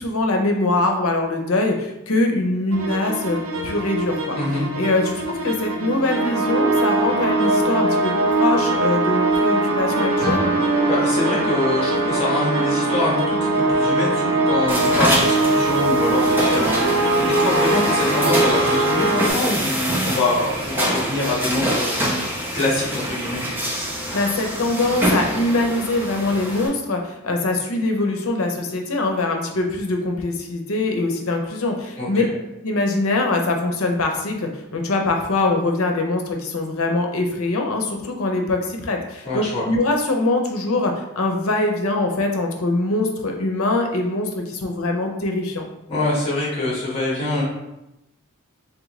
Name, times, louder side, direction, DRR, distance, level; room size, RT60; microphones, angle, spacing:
voice 1, 0.0-4.4 4.8-8.1 8.4-10.5 24.1-32.2 32.6-45.6, left 2 dB, 90° left, 3 dB, 0.7 m, -23 dB
sound 1, 2.7-19.3, right 2 dB, 75° right, 0.6 m, -21 dB
sound 2, 10.2-12.9, left 1 dB, 45° right, 1.4 m, -31 dB
voice 2, 10.8-22.3 22.5-23.4 32.0-32.3 39.2-39.6 45.9-47.4, left 2 dB, 30° left, -6 dB, 1.5 m, -24 dB
sound 3, 14.7-26.7, equal, 10° right, 0.7 m, -25 dB
3.7 x 3.4 x 3.1 m, 0.91 s
head